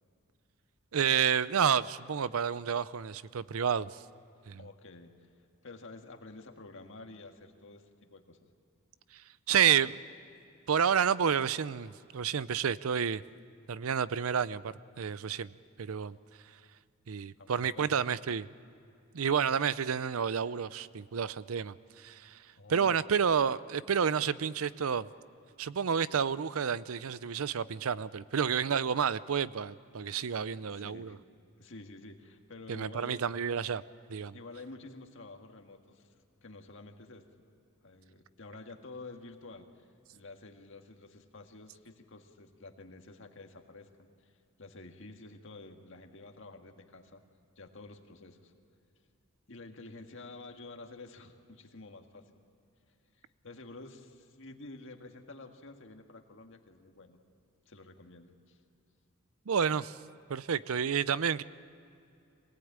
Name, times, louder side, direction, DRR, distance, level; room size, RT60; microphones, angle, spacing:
voice 1, 0.9-3.9 4.5-4.6 9.5-10.0 10.7-13.2 13.7-15.5 15.8-16.1 17.1-18.5 19.1-21.7 22.0-22.3 22.7-25.1 25.6-31.2 32.7-33.8 34.1-34.4 59.5-59.9 60.3-61.4, right 7 dB, 80° right, 17 dB, 0.5 m, -30 dB
voice 2, 4.6-5.3 5.6-8.4 17.4-18.0 22.6-23.0 30.7-31.2 31.6-33.2 34.3-36.1 36.4-37.3 37.8-44.3 44.6-47.2 47.6-48.5 49.5-52.4 53.4-57.2 57.7-58.6, left 2 dB, 60° left, 4 dB, 1.7 m, -50 dB
24.5 x 18.5 x 8.8 m, 2.6 s
head